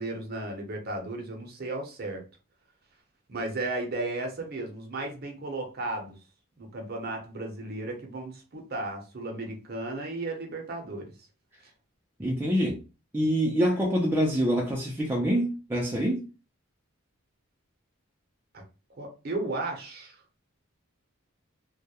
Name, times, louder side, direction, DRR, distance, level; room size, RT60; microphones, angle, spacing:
voice 1, 0.0-2.2 3.3-6.1 6.6-11.1 18.5-18.6 19.0-20.2, right 2 dB, 45° right, 0.6 m, -34 dB
voice 2, 12.2-12.8 13.1-16.2, equal, 10° right, 0.4 m, -25 dB
2.2 x 2.1 x 2.8 m
head